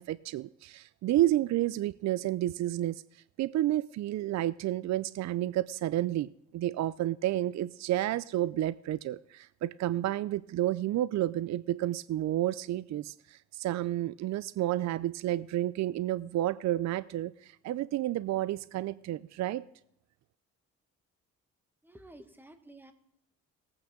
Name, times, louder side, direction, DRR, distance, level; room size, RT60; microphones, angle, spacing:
voice 1, 0.0-3.0 3.4-19.6, right 14 dB, 65° right, 16 dB, 0.5 m, -30 dB
voice 2, 21.8-22.9, right 1 dB, 5° right, 7 dB, 1.5 m, -52 dB
19.5 x 8.9 x 3.8 m, 0.75 s
cardioid pair, 90°, 30 cm